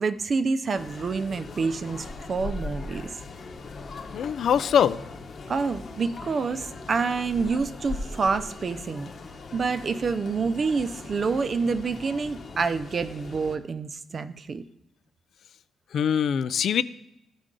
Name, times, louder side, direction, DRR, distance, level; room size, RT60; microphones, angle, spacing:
voice 1, 0.0-3.1 5.5-9.1 9.5-14.6, right 4 dB, 45° right, 11 dB, 0.5 m, -27 dB
sound 1, 0.7-13.6, left 3 dB, 50° left, 1.0 m, -40 dB
voice 2, 4.1-5.0 15.9-16.8, left 8 dB, 70° left, 15 dB, 0.4 m, -23 dB
14.0 x 5.1 x 3.8 m, 0.88 s
cardioid pair, 100°, 0 cm